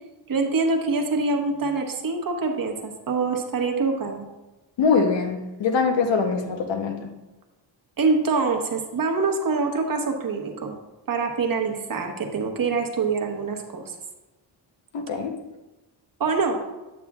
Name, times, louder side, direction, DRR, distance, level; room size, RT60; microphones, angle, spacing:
voice 1, 0.3-4.2 8.0-10.7 11.1-13.9 16.2-16.6, right 4 dB, 45° right, 2 dB, 1.1 m, -25 dB
voice 2, 4.8-7.1 14.9-15.4, left 5 dB, 70° left, 6 dB, 1.0 m, -23 dB
8.9 x 8.5 x 2.4 m, 1.1 s
wide cardioid pair, 140°, 46 cm